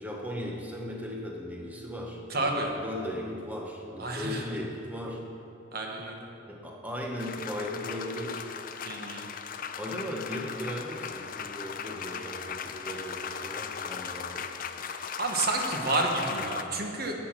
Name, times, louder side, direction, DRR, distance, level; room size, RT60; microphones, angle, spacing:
voice 1, 0.0-5.2 6.5-8.5 9.8-14.5, equal, 10° right, 0 dB, 0.9 m, -37 dB
voice 2, 2.3-2.7 4.0-4.4 5.7-6.2 8.8-9.3 15.2-17.2, right 2 dB, 50° right, 2 dB, 1.3 m, -30 dB
sound 1, 7.2-16.6, left 7 dB, 45° left, 0.5 m, -38 dB
12.5 x 8.3 x 5.8 m, 2.8 s
head